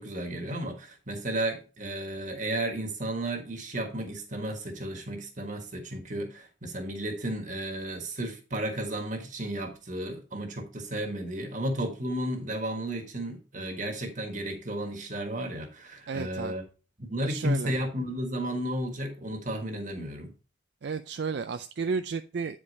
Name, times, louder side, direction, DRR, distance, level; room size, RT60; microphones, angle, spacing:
voice 1, 0.0-16.6 17.0-20.3, right 1 dB, 40° right, 1.5 m, -33 dB
voice 2, 16.1-16.5 17.2-17.7 20.8-22.6, right 5 dB, 55° right, 0.4 m, -32 dB
8.8 x 4.9 x 4.1 m
head